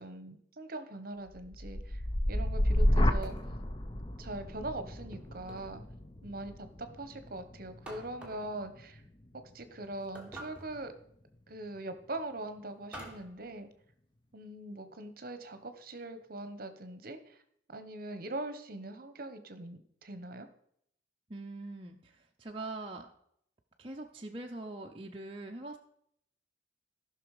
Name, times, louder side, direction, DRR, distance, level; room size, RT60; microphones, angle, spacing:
voice 1, 0.0-2.0 2.3-3.4 4.2-5.8 6.2-9.0 9.3-10.9 11.5-13.7 14.3-17.4 17.7-20.5, right 2 dB, 50° right, 10 dB, 1.0 m, -42 dB
sound 1, 1.3-9.4 9.8-10.3, left 1 dB, 25° left, 0.7 m, -32 dB
sound 2, 3.0-3.7 5.1-5.8 7.8-8.5 10.1-10.9 12.9-13.3, right 1 dB, 5° right, 1.7 m, -48 dB
voice 2, 21.3-23.1 23.8-25.8, right 2 dB, 30° right, 0 dB, 0.7 m, -43 dB
14.5 x 6.0 x 4.9 m, 0.69 s
head